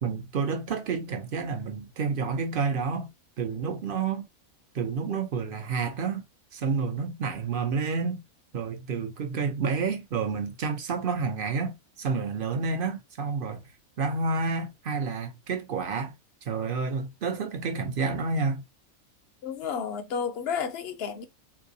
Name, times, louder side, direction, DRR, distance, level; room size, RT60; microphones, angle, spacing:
voice 1, 0.0-3.1 3.4-4.2 4.7-6.2 6.5-8.2 8.5-13.6 14.0-16.1 16.5-18.6, right 5 dB, 50° right, 0.7 m, -29 dB
voice 2, 19.4-21.2, left 6 dB, 60° left, 0.7 m, -31 dB
3.6 x 2.7 x 2.6 m
omnidirectional pair, 1.5 m